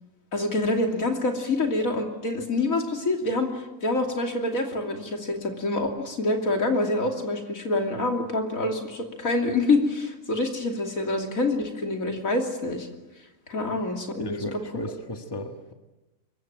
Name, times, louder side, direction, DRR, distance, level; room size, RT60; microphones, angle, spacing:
voice 1, 0.3-12.9 13.5-14.5, left 2 dB, 80° left, 3 dB, 3.3 m, -26 dB
voice 2, 14.2-15.7, equal, 15° left, 5 dB, 1.7 m, -35 dB
24.5 x 23.0 x 9.1 m, 1.1 s
omnidirectional pair, 1.4 m